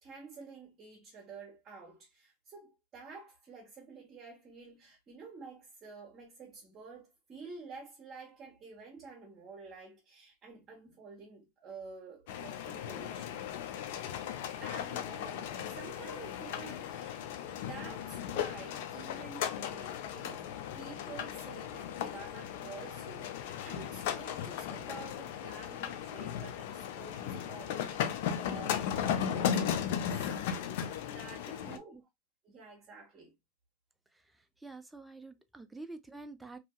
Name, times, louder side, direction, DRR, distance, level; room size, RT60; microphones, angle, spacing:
voice 1, 0.0-13.5 14.6-20.5 20.7-29.6 30.1-30.8 31.0-32.0 32.4-33.3, right 4 dB, 30° right, 1.2 m, -50 dB
sound 1, 12.3-31.8, left 9 dB, 65° left, 0.5 m, -36 dB
voice 2, 31.7-32.0 34.6-36.6, right 3 dB, 5° right, 0.4 m, -48 dB
2.8 x 2.7 x 2.2 m
supercardioid pair, 120°, 0 cm